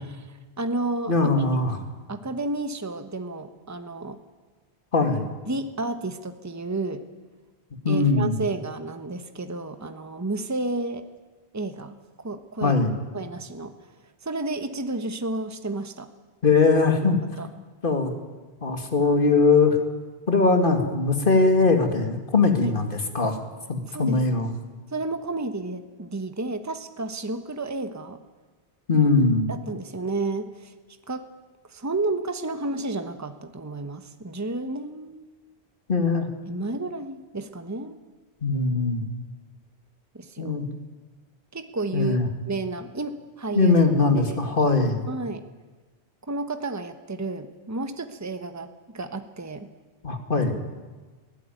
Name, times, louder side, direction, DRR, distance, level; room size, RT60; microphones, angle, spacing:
voice 1, 0.2-1.1 2.1-4.2 5.5-7.1 7.9-11.0 11.5-12.8 13.1-13.7 14.2-16.1 17.4-17.5 22.6-22.7 23.9-24.2 24.9-28.2 28.9-29.0 29.5-30.7 31.1-31.2 31.7-35.2 36.5-38.0 38.7-38.9 40.1-40.6 41.5-42.2 42.5-43.8 44.3-44.4 45.1-45.4 46.3-49.7, right 2 dB, 15° right, 9 dB, 1.1 m, -31 dB
voice 2, 1.1-1.8 4.9-5.3 7.8-8.4 12.6-13.0 16.4-17.2 17.8-18.1 18.6-19.8 20.3-23.4 23.7-24.5 28.9-29.5 35.9-36.3 38.4-39.1 40.4-40.7 41.9-42.3 43.5-45.0 50.0-50.6, left 3 dB, 50° left, 5 dB, 2.4 m, -21 dB
23.0 x 16.5 x 9.2 m, 1.3 s
omnidirectional pair, 1.1 m